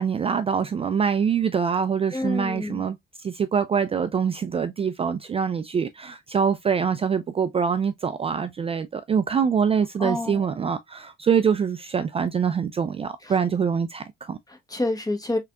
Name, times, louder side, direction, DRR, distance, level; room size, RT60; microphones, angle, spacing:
voice 1, 0.0-14.4, right 6 dB, 30° right, 0.3 m, -24 dB
voice 2, 2.1-2.8 10.0-10.4 14.5-15.4, left 1 dB, 20° left, 1.0 m, -28 dB
3.8 x 3.3 x 2.3 m
cardioid pair, 90°, 20 cm